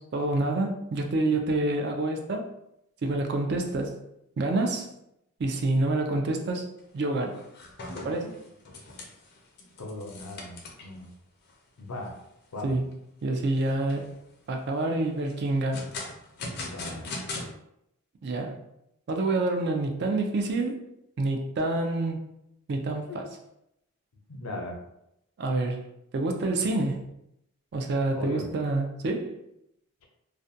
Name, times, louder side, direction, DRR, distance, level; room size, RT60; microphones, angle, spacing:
voice 1, 0.0-2.5 3.0-4.0 4.4-4.9 5.4-6.7 6.9-7.4 8.0-8.4 12.6-12.8 13.2-14.1 14.5-15.9 18.2-18.6 19.1-20.8 21.2-22.3 22.7-23.3 25.4-25.8 26.1-27.0 27.7-29.4, right 2 dB, 50° right, 3 dB, 0.3 m, -27 dB
sound 1, 6.8-7.0 7.3-11.0 11.5-11.6 12.0-12.1 12.6-13.0 13.6-14.2 15.3-17.5, left 2 dB, 45° left, 0.4 m, -40 dB
voice 2, 9.8-11.1 11.8-12.1 12.5-12.8 16.6-17.1 23.1-23.2 24.3-24.8 28.2-28.5, left 2 dB, 90° left, 1 dB, 0.6 m, -38 dB
2.4 x 2.1 x 2.6 m, 0.81 s
head